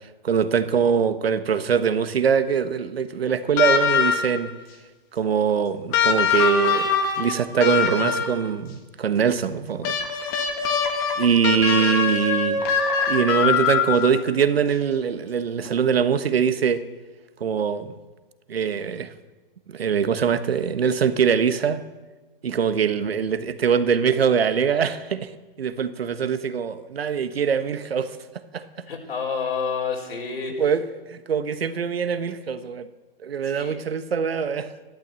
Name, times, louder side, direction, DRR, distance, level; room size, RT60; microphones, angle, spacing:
voice 1, 0.2-4.5 5.1-10.0 11.2-12.6 13.1-16.8 17.4-17.9 18.5-19.1 19.7-21.8 22.4-25.3 25.6-28.2 28.5-28.7 30.6-32.9 33.2-34.7, right 7 dB, 85° right, 1.4 m, -23 dB
sound 1, 3.6-4.5 5.9-8.5 9.8-14.3 15.6-15.7, left 6 dB, 20° left, 1.3 m, -23 dB
voice 2, 28.9-30.6 33.4-33.8, left 5 dB, 80° left, 4.4 m, -29 dB
14.0 x 12.0 x 7.7 m
hypercardioid pair, 165°, 29 cm